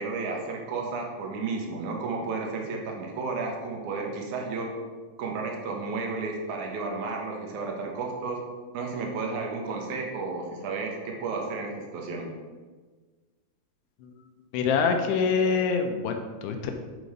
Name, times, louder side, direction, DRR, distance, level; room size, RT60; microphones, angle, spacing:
voice 1, 0.0-4.7 5.2-8.4 8.7-12.3, right 4 dB, 65° right, 0 dB, 2.1 m, -32 dB
voice 2, 14.5-16.8, left 5 dB, 90° left, 5 dB, 2.8 m, -25 dB
11.0 x 3.9 x 5.0 m, 1.4 s
omnidirectional pair, 4.7 m